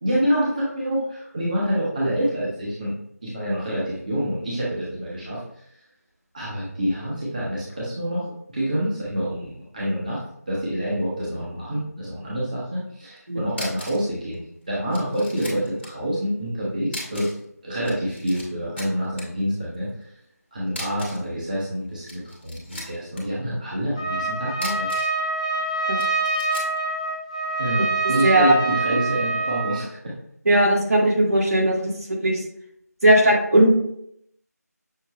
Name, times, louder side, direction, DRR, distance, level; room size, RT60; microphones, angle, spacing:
voice 1, 0.0-2.9 3.2-5.4 6.3-10.2 10.5-17.3 17.6-19.9 20.5-24.9 27.6-30.1, equal, 30° right, -7 dB, 1.0 m, -27 dB
sound 1, 13.2-13.3 13.5-14.1 14.3-14.4 14.9-15.9 16.9-17.4 17.7-18.4 18.8-19.2 20.7-21.3 21.9-23.2 24.5-25.2 26.0-26.8, left 1 dB, 40° left, 1.5 m, -37 dB
Trumpet, 23.9-29.8, right 3 dB, 20° left, 0.4 m, -25 dB
voice 2, 28.2-28.5 30.4-32.4 33.0-33.9, right 1 dB, 65° right, -2 dB, 1.6 m, -18 dB
6.5 x 2.5 x 3.1 m, 0.72 s
figure-of-eight pair, 170°, 9 cm